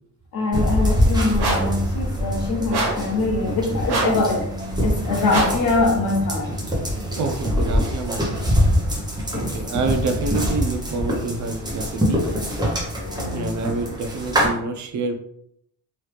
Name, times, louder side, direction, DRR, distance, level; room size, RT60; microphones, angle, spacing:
voice 1, 0.3-4.5 4.8-6.5 9.3-9.5 13.0-13.5, left 3 dB, 60° left, -1 dB, 1.0 m, -23 dB
sound 1, 0.5-14.5, equal, 10° right, 0.7 m, -24 dB
sound 2, 1.4-1.8 2.7-3.1 3.9-4.2 5.3-5.7, right 2 dB, 75° right, 1.0 m, -24 dB
voice 2, 7.2-8.4 9.3-12.3 13.3-15.1, right 3 dB, 45° right, 6 dB, 0.5 m, -27 dB
3.0 x 2.4 x 3.2 m, 0.73 s
cardioid pair, 150°, 40 cm